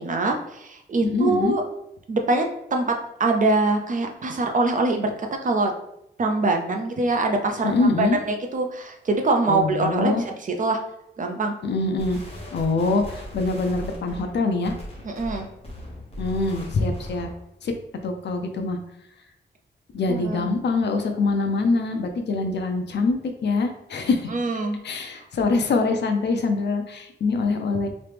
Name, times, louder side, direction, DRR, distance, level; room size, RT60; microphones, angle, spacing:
voice 1, 0.0-1.6 2.1-2.9 3.2-5.7 6.2-10.8 11.2-11.5 15.0-15.5 20.1-20.5 24.3-24.8, right 3 dB, 45° right, 4 dB, 0.5 m, -24 dB
voice 2, 1.0-1.5 7.6-8.2 9.5-10.2 11.6-12.2 12.5-14.8 16.2-17.3 17.6-17.7 18.0-18.8 19.9-24.3 24.8-27.9, left 3 dB, 65° left, 5 dB, 0.5 m, -24 dB
sound 1, 12.0-17.4, left 1 dB, 30° left, 1.1 m, -38 dB
3.0 x 2.9 x 3.3 m, 0.78 s
wide cardioid pair, 115°, 19 cm